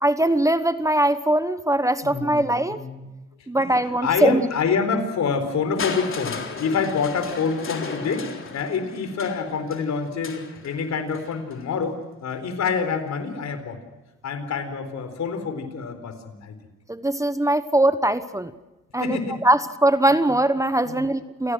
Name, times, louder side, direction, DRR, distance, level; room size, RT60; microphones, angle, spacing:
voice 1, 0.0-2.8 3.5-4.5 16.9-18.5 18.9-21.5, right 1 dB, 10° right, 12 dB, 1.1 m, -21 dB
voice 2, 2.0-3.0 4.0-8.3 8.5-13.8 14.2-16.5 19.0-19.4 20.8-21.1, left 5 dB, 65° left, 9 dB, 4.2 m, -27 dB
Crushing, 5.8-11.7 12.6-12.7, left 5 dB, 45° left, 3.7 m, -35 dB
28.0 x 18.0 x 6.2 m, 1.1 s
cardioid pair, 90°, 30 cm